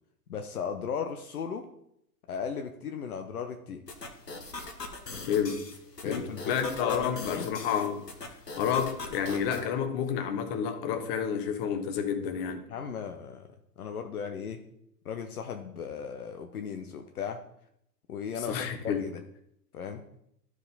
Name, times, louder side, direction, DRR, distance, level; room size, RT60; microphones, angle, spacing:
voice 1, 0.3-1.7 2.3-3.8 6.0-7.5 12.7-14.6 15.0-17.4 18.1-19.2 19.7-20.0, left 6 dB, 65° left, 5 dB, 0.8 m, -36 dB
sound 1, 3.9-9.6, left 3 dB, 85° left, 1.4 m, -42 dB
voice 2, 5.3-5.6 6.0-8.0 8.6-12.6 18.5-19.1, left 7 dB, 40° left, 7 dB, 1.3 m, -30 dB
12.5 x 4.8 x 4.1 m, 0.76 s
figure-of-eight pair, 100°, 47 cm